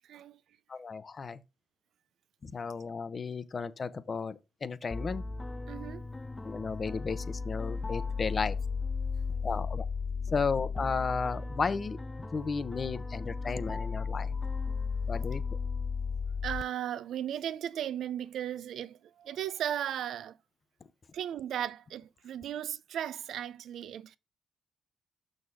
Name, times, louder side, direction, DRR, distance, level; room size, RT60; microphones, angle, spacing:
voice 1, 0.1-0.4 5.7-6.1 16.4-20.4 21.1-24.2, right 10 dB, 70° right, 0.5 m, -36 dB
voice 2, 0.7-1.4 2.4-5.2 6.4-8.6 9.4-9.9 10.3-12.0 12.3-14.3 15.1-15.6, left 5 dB, 35° left, 0.8 m, -34 dB
sound 1, 4.9-16.6, left 4 dB, 15° left, 0.4 m, -35 dB
6.5 x 6.2 x 3.6 m
cardioid pair, 90°, 0 cm